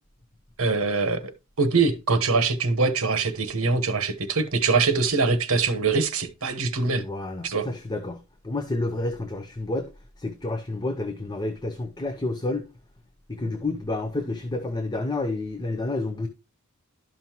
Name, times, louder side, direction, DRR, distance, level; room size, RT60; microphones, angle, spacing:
voice 1, 0.6-1.3 1.6-7.0 7.4-7.7, right 4 dB, 65° right, 1.1 m, -23 dB
voice 2, 7.0-9.9 10.2-12.7 13.3-16.3, left 2 dB, 20° left, 0.7 m, -30 dB
12.0 x 5.5 x 3.0 m
head